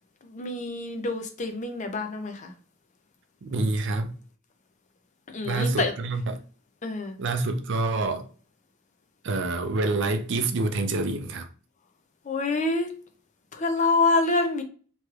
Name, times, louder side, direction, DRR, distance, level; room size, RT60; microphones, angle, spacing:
voice 1, 0.2-2.5 5.3-5.9 6.8-7.2 12.3-12.9 13.5-14.6, left 3 dB, 35° left, 0.5 m, -26 dB
voice 2, 3.4-4.1 5.4-6.4 7.2-8.3 9.2-11.5, right 3 dB, 55° right, 0.5 m, -27 dB
3.1 x 3.0 x 2.4 m
head